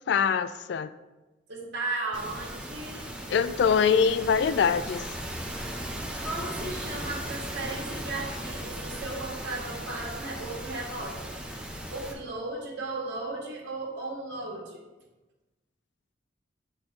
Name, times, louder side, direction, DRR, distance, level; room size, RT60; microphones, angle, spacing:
voice 1, 0.1-0.9 3.3-5.0, left 6 dB, 65° left, 13 dB, 0.3 m, -23 dB
voice 2, 1.5-3.1 6.2-11.3 11.9-14.8, right 2 dB, 70° right, -4 dB, 1.7 m, -35 dB
sound 1, 2.1-12.1, right 1 dB, 5° right, 1.0 m, -37 dB
7.8 x 4.5 x 4.2 m, 1.1 s
head